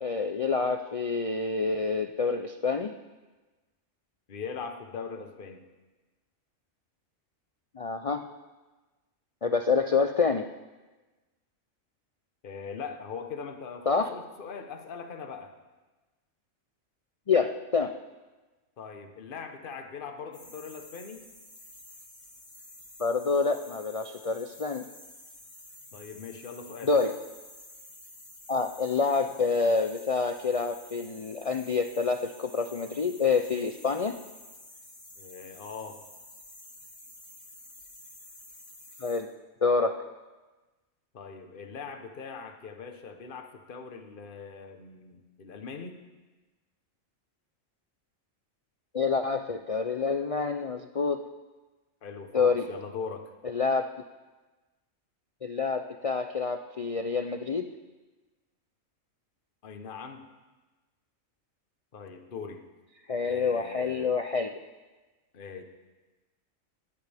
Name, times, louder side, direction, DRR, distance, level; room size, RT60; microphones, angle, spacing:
voice 1, 0.0-2.9 7.7-8.3 9.4-10.5 13.9-14.1 17.3-17.9 23.0-24.8 26.8-27.2 28.5-34.1 39.0-39.3 39.6-40.0 48.9-51.3 52.3-52.7 53.4-53.9 55.4-57.7 63.1-64.6, left 4 dB, 60° left, 7 dB, 0.3 m, -27 dB
voice 2, 4.3-5.6 12.4-15.5 18.8-21.3 25.9-26.9 35.2-36.0 41.1-46.0 52.0-53.3 59.6-60.3 61.9-62.6 63.2-64.1 65.3-65.6, left 5 dB, 40° left, 6 dB, 1.2 m, -41 dB
sound 1, 20.3-39.2, left 1 dB, 80° left, 3.4 m, -50 dB
20.5 x 14.0 x 3.5 m, 1.2 s
omnidirectional pair, 1.4 m